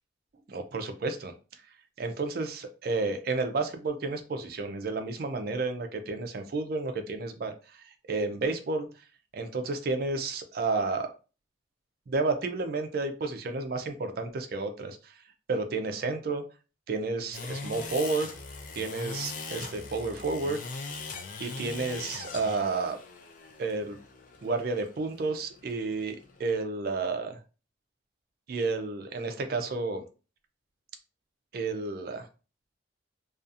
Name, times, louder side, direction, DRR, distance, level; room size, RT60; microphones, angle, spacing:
voice 1, 0.5-1.3 2.0-8.9 9.3-11.1 12.1-15.2 15.5-16.4 16.9-18.3 18.7-20.6 21.4-23.0 23.6-24.0 24.4-27.4 28.5-30.0 31.5-32.3, right 3 dB, 50° right, 6 dB, 0.4 m, -31 dB
sound 1, 17.3-26.5, left 4 dB, 45° left, 0.4 m, -41 dB
2.6 x 2.4 x 2.4 m, 0.33 s
head